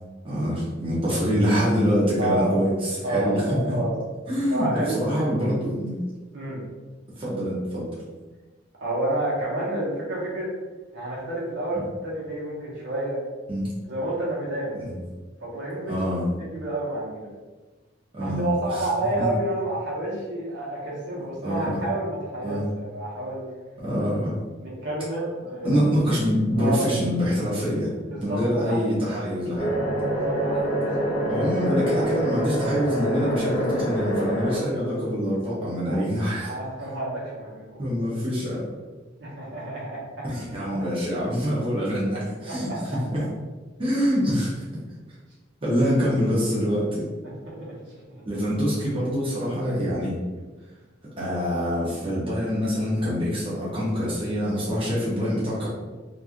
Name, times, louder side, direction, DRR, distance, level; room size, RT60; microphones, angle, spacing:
voice 1, 0.2-3.7 4.3-4.7 4.9-5.9 7.2-7.9 11.7-11.8 13.5-13.7 14.8-15.0 15.9-16.3 18.1-18.9 19.2-19.3 21.4-21.8 22.4-22.6 23.8-24.3 25.6-29.7 31.3-36.5 37.8-38.6 40.2-43.2 43.8-44.8 45.6-47.1 48.2-50.1 51.2-55.7, equal, 30° right, -8 dB, 0.6 m, -25 dB
voice 2, 2.2-2.6 3.0-4.0 4.5-5.3 6.3-6.6 8.8-10.5 10.9-13.2 13.8-14.8 15.4-15.9 16.4-17.3 18.2-23.4 24.6-25.8 26.6-26.9 28.1-28.8 30.1-31.3 31.9-32.1 35.9-36.0 36.4-37.9 39.2-40.9 42.4-43.0 47.2-47.8, right 1 dB, 65° right, -5 dB, 0.9 m, -30 dB
sound 1, 29.6-34.6, right 1 dB, 35° left, 0.8 m, -26 dB
3.0 x 2.4 x 2.4 m, 1.3 s
head